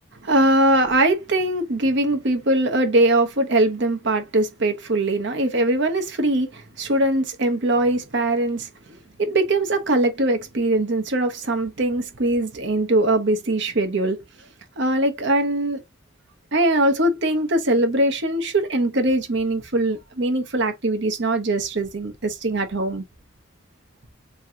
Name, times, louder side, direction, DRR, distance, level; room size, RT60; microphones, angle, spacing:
voice 1, 0.2-14.2 14.8-15.8 16.5-23.0, right 1 dB, 60° right, 0.9 m, -21 dB
3.7 x 3.1 x 2.8 m
head